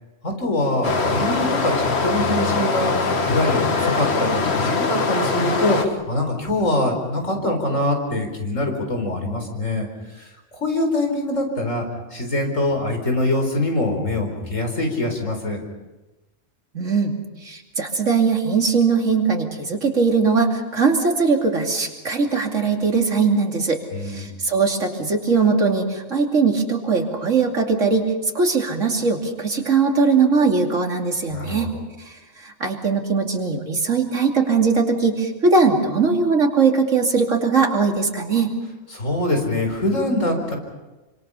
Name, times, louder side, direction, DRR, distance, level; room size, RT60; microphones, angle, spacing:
voice 1, 0.2-9.9 10.2-10.3 10.5-11.8 12.1-15.6 23.9-24.3 31.3-31.7 38.9-40.5, left 1 dB, 80° left, 3 dB, 4.9 m, -24 dB
Stream, 0.8-5.9, left 4 dB, 55° left, 1.7 m, -22 dB
voice 2, 16.7-17.1 17.4-31.7 32.1-32.2 32.4-38.6, right 4 dB, 75° right, 2 dB, 3.1 m, -20 dB
27.0 x 26.0 x 5.7 m, 1.1 s
omnidirectional pair, 1.3 m